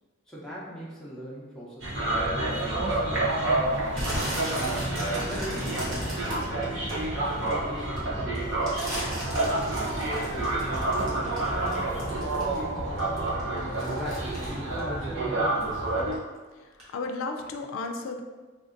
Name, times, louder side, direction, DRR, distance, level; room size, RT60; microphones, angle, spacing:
voice 1, 0.3-4.6 5.2-7.1 7.4-10.6 11.0-13.3 13.8-15.8, equal, 5° left, -6 dB, 0.6 m, -41 dB
sound 1, 1.8-16.2, right 2 dB, 70° right, 0.7 m, -29 dB
sound 2, 2.1-15.5, left 1 dB, 45° left, 0.7 m, -41 dB
sound 3, 3.9-7.5 7.9-12.7 13.0-15.7 16.0-16.4 16.8-16.9, equal, 90° right, 1.2 m, -36 dB
voice 2, 16.6-18.2, left 3 dB, 85° left, 5 dB, 0.3 m, -34 dB
3.6 x 2.5 x 2.5 m, 1.3 s
head